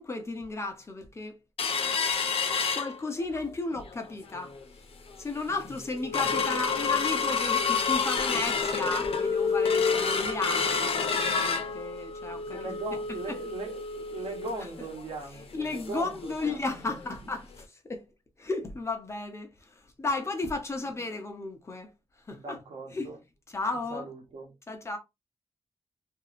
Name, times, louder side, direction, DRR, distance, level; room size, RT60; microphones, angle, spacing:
voice 1, 0.0-1.4 2.7-4.5 5.2-12.8 13.3-13.4 15.5-18.1 18.4-22.6 22.9-23.1 23.5-24.1 24.7-25.0, left 3 dB, 25° left, 0.7 m, -34 dB
sound 1, 1.6-3.4 3.9-4.0 4.3-4.6 5.1-5.2 5.6-16.1 16.4-16.5 16.9-17.1 17.6-17.7, left 5 dB, 75° left, 0.6 m, -29 dB
voice 2, 6.1-6.7 12.2-16.6 16.9-17.2 22.3-23.2 23.9-24.5, right 3 dB, 80° right, 1.0 m, -40 dB
2.9 x 2.7 x 2.4 m
wide cardioid pair, 140°, 10 cm